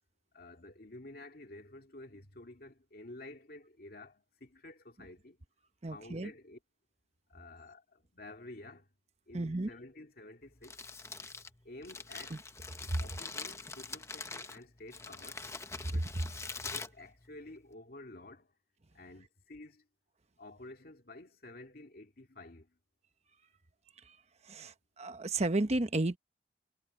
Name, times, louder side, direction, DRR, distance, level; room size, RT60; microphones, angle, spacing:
voice 1, 0.3-5.4 5.9-6.6 7.3-8.9 9.3-10.8 11.6-12.4 13.0-15.5 15.9-16.1 16.7-18.5 18.9-19.9 20.4-22.8, left 2 dB, 60° left, 2.3 m, -51 dB
voice 2, 5.8-6.3 9.3-9.7 12.3-12.4 12.9-13.0 15.9-16.0 24.0-24.2 24.4-26.2, right 2 dB, 40° right, 1.0 m, -32 dB
Crumpling crinkling, 10.4-17.7, left 4 dB, 15° left, 1.0 m, -44 dB
head